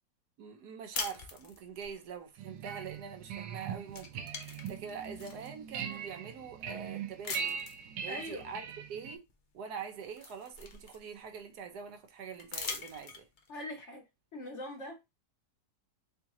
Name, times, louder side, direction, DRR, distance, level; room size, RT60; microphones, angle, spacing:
voice 1, 0.4-7.6 8.0-9.2 9.5-13.3, right 6 dB, 70° right, 1.2 m, -44 dB
sound 1, 0.9-1.9 3.3-3.6 3.9-5.5 6.1-6.2 7.2-7.8 9.3-9.4 9.8-11.3 12.4-13.5, left 4 dB, 80° left, 0.4 m, -42 dB
sound 2, 2.4-9.2, right 7 dB, 90° right, 1.3 m, -41 dB
voice 2, 8.1-8.5 13.5-14.0 14.3-15.1, left 1 dB, 55° left, 0.9 m, -42 dB
3.6 x 3.1 x 2.9 m
omnidirectional pair, 1.9 m